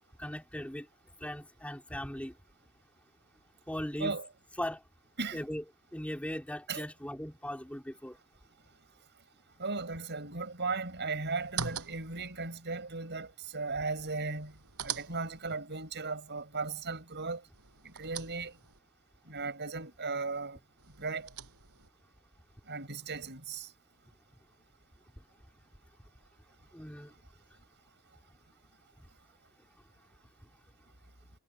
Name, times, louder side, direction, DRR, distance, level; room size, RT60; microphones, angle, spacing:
voice 1, 0.2-0.9 1.2-2.3 3.7-4.2 4.6-4.8 5.3-5.6 5.9-8.2 26.7-27.1, left 1 dB, 5° left, 3.8 m, -38 dB
voice 2, 9.6-14.5 14.8-17.4 17.8-18.5 19.3-20.6 21.0-21.3 22.7-23.7, right 4 dB, 50° right, 7.0 m, -36 dB
sound 1, 11.4-12.3 14.3-15.6 17.5-18.8 20.8-21.9, right 7 dB, 75° right, 6.2 m, -42 dB
head